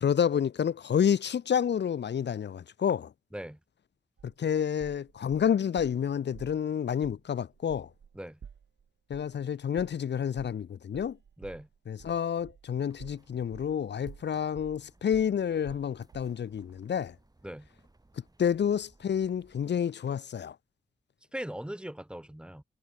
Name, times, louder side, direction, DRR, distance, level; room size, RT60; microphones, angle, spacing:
voice 1, 0.0-3.1 4.4-7.9 9.1-11.2 11.9-17.1 18.4-20.5, left 8 dB, 75° left, 0.7 m, -29 dB
sound 1, 4.2-6.0 6.3-6.6 7.0-7.2 7.5-13.8 14.1-16.3, right 7 dB, 75° right, 1.3 m, -51 dB
voice 2, 11.4-11.7 17.4-17.7 21.3-22.6, equal, 5° right, 1.6 m, -39 dB
sound 2, 12.9-19.7, right 2 dB, 20° right, 7.4 m, -62 dB
wide cardioid pair, 130°, 18 cm